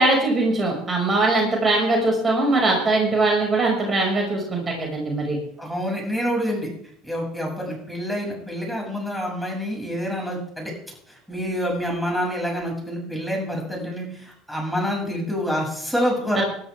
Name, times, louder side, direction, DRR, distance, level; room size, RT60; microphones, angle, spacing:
voice 1, 0.0-5.4 16.3-16.4, right 2 dB, 25° right, -1 dB, 6.3 m, -21 dB
voice 2, 5.6-6.7 7.0-10.7 11.1-16.4, equal, ahead, -1 dB, 7.4 m, -27 dB
20.5 x 13.0 x 3.7 m, 0.67 s
hypercardioid pair, 75°, 0 cm